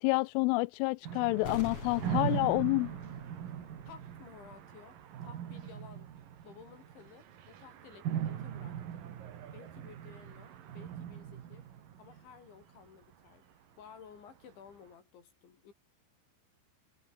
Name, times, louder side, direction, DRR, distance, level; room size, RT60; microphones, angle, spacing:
voice 1, 0.0-2.9, left 25 dB, 90° left, 3.1 m, -29 dB
sound 1, 1.0-13.1, right 10 dB, 55° right, 3.2 m, -40 dB
sound 2, 1.4-4.3 4.6-4.7, left 4 dB, 30° left, 4.6 m, -45 dB
voice 2, 3.9-5.0 5.2-6.1 6.4-9.1 9.5-11.7 12.0-13.5 13.8-15.7, left 7 dB, 70° left, 6.8 m, -55 dB
omnidirectional pair, 5.6 m